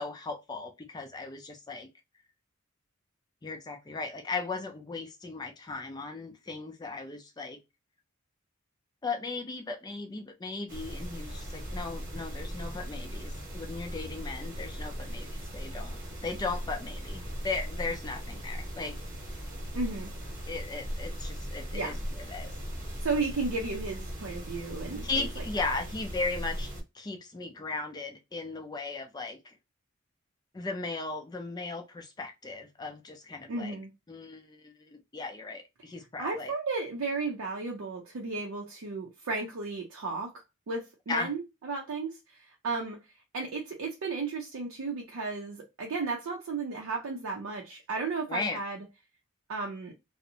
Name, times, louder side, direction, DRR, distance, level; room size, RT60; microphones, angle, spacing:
voice 1, 0.0-1.9 3.4-7.6 9.0-19.0 20.5-22.5 25.0-29.6 30.5-33.8 34.1-36.5 41.1-41.3 48.3-48.6, left 3 dB, 20° left, 0.4 m, -37 dB
sound 1, 10.7-26.8, equal, 40° right, 0.9 m, -38 dB
voice 2, 19.7-20.1 21.7-22.0 23.0-25.8 33.5-33.9 36.2-43.0 43.3-48.8 49.5-49.9, right 3 dB, 75° right, 0.5 m, -34 dB
2.5 x 2.0 x 2.7 m
head